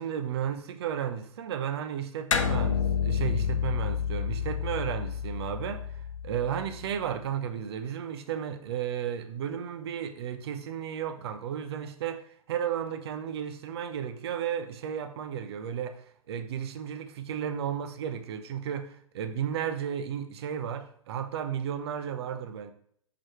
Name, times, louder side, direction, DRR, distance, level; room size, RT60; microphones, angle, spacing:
voice 1, 0.0-5.9 6.2-12.2 12.5-22.7, right 8 dB, 45° right, 0.8 m, -33 dB
sound 1, 2.3-7.0, left 7 dB, 60° left, 0.8 m, -30 dB
6.2 x 6.1 x 3.1 m
figure-of-eight pair, 115°, 18 cm